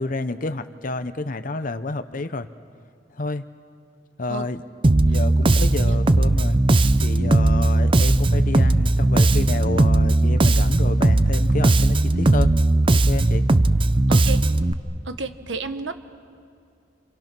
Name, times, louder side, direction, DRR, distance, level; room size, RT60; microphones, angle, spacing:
voice 1, 0.0-2.5 3.1-3.5 4.2-4.6 5.0-6.6 7.0-12.5 12.9-13.4, left 2 dB, 45° left, 10 dB, 0.8 m, -29 dB
Bass guitar, 4.8-14.7, right 2 dB, 30° right, 0.6 m, -18 dB
voice 2, 15.0-15.9, right 3 dB, 80° right, 9 dB, 1.4 m, -31 dB
29.5 x 28.0 x 6.1 m, 2.4 s
head